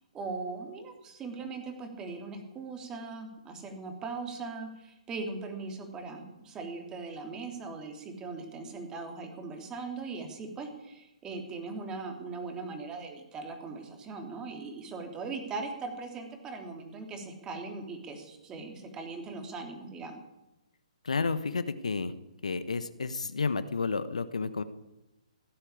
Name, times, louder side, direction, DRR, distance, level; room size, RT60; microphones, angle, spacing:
voice 1, 0.1-20.2, right 4 dB, 20° right, 4 dB, 3.4 m, -40 dB
voice 2, 21.0-22.1 22.4-24.6, left 4 dB, 80° left, 13 dB, 1.2 m, -31 dB
16.0 x 10.0 x 8.5 m, 0.94 s
figure-of-eight pair, 130°, 4 cm